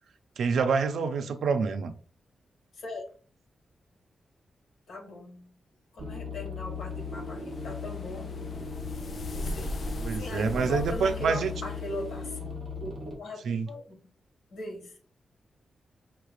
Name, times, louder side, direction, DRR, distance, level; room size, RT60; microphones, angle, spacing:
voice 1, 0.4-1.9 10.0-11.5 13.4-13.7, right 5 dB, 80° right, 0.5 m, -27 dB
voice 2, 4.9-5.5 5.9-8.4 9.3-9.7 10.1-13.8 14.5-14.9, left 1 dB, 90° left, 2.0 m, -39 dB
sound 1, 6.0-13.2, left 4 dB, 40° right, 1.0 m, -38 dB
sound 2, 7.0-12.3, left 2 dB, 50° left, 0.3 m, -39 dB
5.7 x 3.2 x 2.4 m
wide cardioid pair, 170°, 0 cm